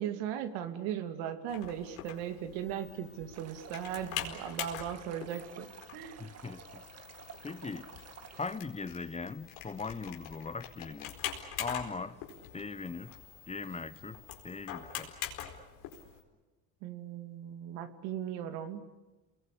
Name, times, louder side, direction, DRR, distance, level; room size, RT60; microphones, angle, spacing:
voice 1, 0.0-6.3 16.8-18.9, right 9 dB, 80° right, 8 dB, 2.7 m, -38 dB
sound 1, 1.5-16.2, left 10 dB, 85° left, 4.6 m, -44 dB
Stream, 3.3-8.6, right 7 dB, 40° right, 2.1 m, -51 dB
voice 2, 6.2-6.8 7.4-7.9 8.4-11.1 11.6-12.2 12.5-13.1 13.5-15.1, left 4 dB, 15° left, 14 dB, 1.0 m, -40 dB
29.0 x 21.5 x 8.5 m, 1.1 s
cardioid pair, 110°, 38 cm